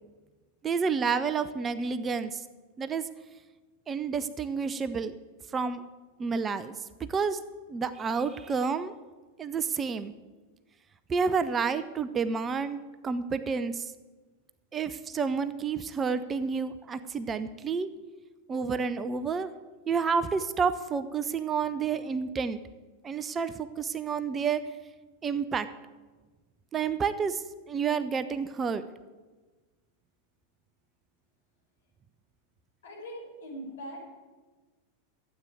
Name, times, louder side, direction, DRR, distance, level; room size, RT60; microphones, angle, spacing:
voice 1, 0.6-2.4 2.8-3.0 3.9-5.1 5.5-5.8 6.2-6.8 7.1-7.4 7.7-8.9 9.4-10.1 11.1-13.9 14.7-17.9 18.5-19.5 19.9-22.6 23.0-24.6 25.2-25.7 26.7-27.4 27.7-28.8, right 5 dB, 20° right, 12 dB, 0.6 m, -29 dB
voice 2, 32.8-34.1, equal, 60° left, -3 dB, 5.5 m, -41 dB
12.5 x 8.4 x 9.0 m, 1.3 s
figure-of-eight pair, 90°, 0 cm